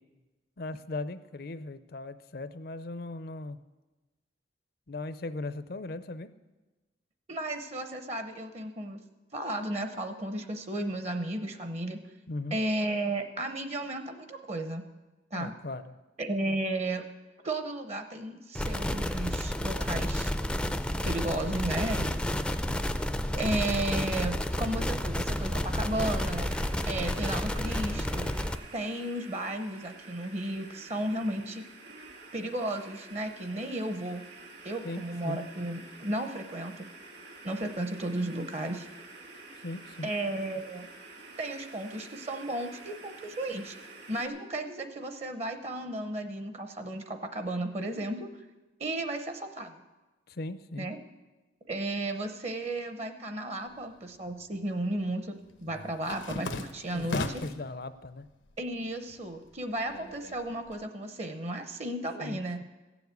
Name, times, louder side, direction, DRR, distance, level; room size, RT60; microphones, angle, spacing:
voice 1, 0.6-3.6 4.9-6.3 12.3-12.6 15.3-15.9 16.4-16.6 34.8-35.4 39.6-40.1 50.3-50.9 56.9-58.3 62.2-62.6, left 2 dB, 55° left, 13 dB, 0.6 m, -38 dB
voice 2, 7.3-9.0 9.3-12.0 12.5-14.8 15.3-15.5 16.2-17.1 17.4-20.3 21.0-22.1 23.3-26.5 26.9-28.3 28.7-31.6 32.3-34.2 34.6-36.9 37.4-38.9 40.0-40.9 41.4-43.8 44.1-48.3 48.8-49.7 50.8-51.0 51.7-57.2 58.6-62.6, right 1 dB, 35° right, 8 dB, 0.7 m, -34 dB
sound 1, 18.5-28.6, left 1 dB, 5° left, 0.4 m, -30 dB
sound 2, 25.9-44.3, right 3 dB, 60° right, 1.8 m, -49 dB
sound 3, 53.8-54.6 54.9-57.7 58.1-58.8 59.1-60.7, left 2 dB, 90° left, 0.9 m, -38 dB
15.5 x 7.2 x 8.1 m, 1.2 s
head